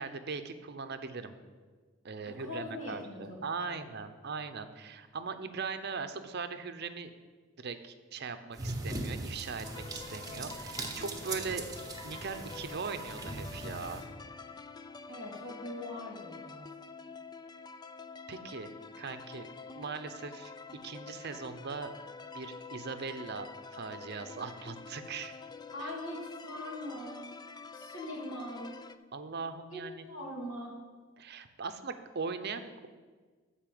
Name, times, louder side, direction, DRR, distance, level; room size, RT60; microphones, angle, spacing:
voice 1, 0.0-1.3 2.0-7.1 7.6-11.7 12.0-14.0 18.3-18.7 19.0-20.5 20.8-21.9 22.3-25.3 25.8-25.9 29.1-30.1 31.2-32.9, right 4 dB, 55° right, 9 dB, 0.7 m, -40 dB
voice 2, 2.3-3.2 3.6-3.8 15.1-16.6 25.7-27.4 27.7-28.7 29.7-29.8 30.1-30.7, left 1 dB, 70° left, -1 dB, 2.5 m, -41 dB
sound 1, 8.5-14.0, right 2 dB, 20° right, 1.0 m, -40 dB
sound 2, 9.6-29.0, left 4 dB, 20° left, 0.3 m, -47 dB
12.0 x 4.3 x 7.6 m, 1.4 s
head